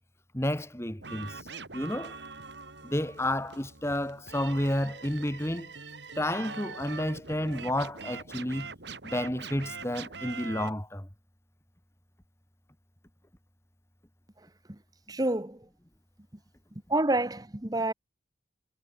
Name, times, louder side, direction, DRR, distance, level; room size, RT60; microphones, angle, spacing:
voice 1, 0.3-1.4 1.7-2.2 2.8-5.7 6.2-8.7 9.0-11.1, left 1 dB, 15° left, 2.3 m, -31 dB
sound 1, 1.0-10.7, right 4 dB, 70° right, 3.4 m, -43 dB
voice 2, 15.1-15.6 16.9-17.9, right 2 dB, 20° right, 1.1 m, -28 dB
head